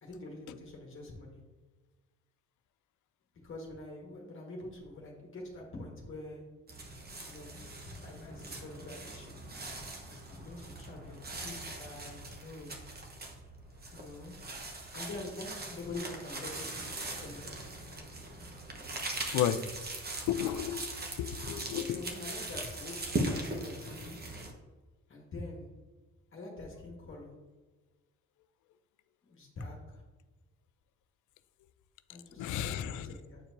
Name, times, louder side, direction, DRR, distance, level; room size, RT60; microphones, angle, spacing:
voice 1, 0.0-1.4 3.4-6.4 7.3-9.4 10.3-12.7 13.9-14.4 14.9-17.6 21.6-24.2 25.1-25.7 26.3-27.3 29.3-30.0 32.1-33.4, left 2 dB, 40° left, 1.5 m, -45 dB
sound 1, 6.7-24.5, right 2 dB, 30° right, 1.1 m, -40 dB
voice 2, 19.3-19.6 20.3-20.8 21.2-22.0 32.4-33.1, left 10 dB, 80° left, 0.5 m, -32 dB
8.7 x 4.5 x 2.6 m
cardioid pair, 90°, 30 cm